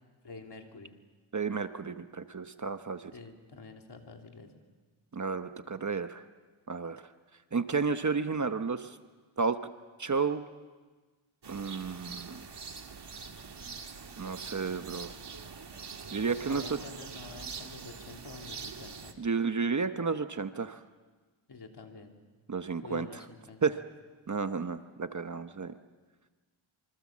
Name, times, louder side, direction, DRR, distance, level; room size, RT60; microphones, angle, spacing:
voice 1, 0.2-0.9 3.1-4.5 16.2-19.1 21.5-22.1 22.8-23.8, left 4 dB, 55° left, 2 dB, 3.3 m, -48 dB
voice 2, 1.3-3.1 5.1-6.2 6.7-7.0 7.5-9.0 9.4-9.6 10.0-10.4 11.5-12.4 14.2-15.1 16.1-16.8 19.2-20.8 22.5-23.2 23.6-23.7 24.3-25.7, right 5 dB, 35° right, 9 dB, 1.0 m, -32 dB
sound 1, 11.4-19.1, right 5 dB, 55° right, 1.9 m, -44 dB
27.0 x 24.5 x 7.4 m, 1.4 s
wide cardioid pair, 105°, 50 cm